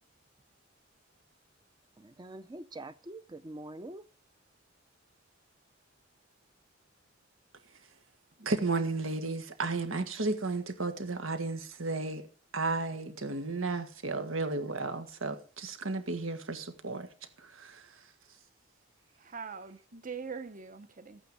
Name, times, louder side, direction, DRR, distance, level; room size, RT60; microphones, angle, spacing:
voice 1, 2.0-4.1, right 1 dB, 20° right, 0.5 m, -45 dB
voice 2, 8.4-12.3 12.5-17.1 17.4-18.0, right 3 dB, 90° right, 1.7 m, -33 dB
voice 3, 19.2-21.2, right 5 dB, 40° right, 0.9 m, -42 dB
13.5 x 9.1 x 5.2 m
head